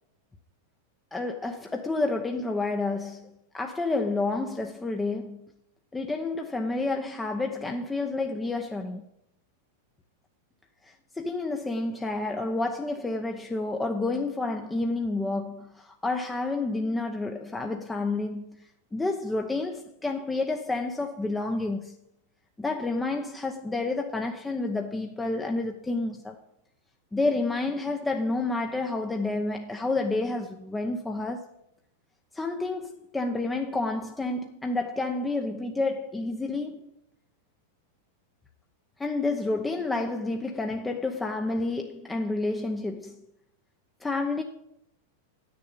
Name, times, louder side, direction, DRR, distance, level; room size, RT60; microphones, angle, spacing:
voice 1, 1.1-5.4 5.9-9.0 10.8-18.7 18.9-22.0 22.6-26.4 27.1-31.5 32.3-36.9 39.0-43.2 44.0-44.4, left 2 dB, 10° left, 0.9 m, -29 dB
9.0 x 6.9 x 8.6 m
hypercardioid pair, 115°, 0 cm